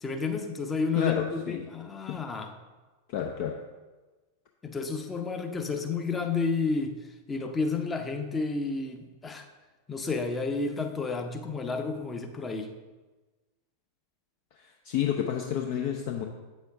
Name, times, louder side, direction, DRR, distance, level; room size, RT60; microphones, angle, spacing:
voice 1, 0.0-2.5 4.6-9.5 9.9-12.7, left 4 dB, 15° left, 5 dB, 0.8 m, -31 dB
voice 2, 0.9-1.7 2.1-2.2 3.1-3.7 14.5-16.3, left 9 dB, 50° left, 2 dB, 0.6 m, -31 dB
8.4 x 6.4 x 3.6 m, 1.2 s
figure-of-eight pair, 90°, 0 cm